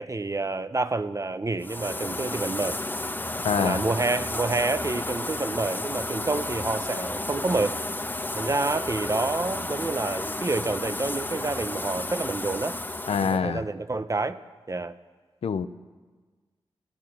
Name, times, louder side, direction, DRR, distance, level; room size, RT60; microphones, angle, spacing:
voice 1, 0.0-2.8 3.6-7.8 8.3-12.8 13.2-14.4 14.7-15.0, right 3 dB, 35° right, 12 dB, 0.7 m, -28 dB
sound 1, 1.6-13.4, left 2 dB, 20° left, 0.8 m, -32 dB
voice 2, 3.4-3.8 13.1-13.6 15.4-15.7, left 6 dB, 80° left, 12 dB, 0.6 m, -25 dB
17.0 x 10.5 x 7.4 m, 1.4 s
cardioid pair, 55°, 10 cm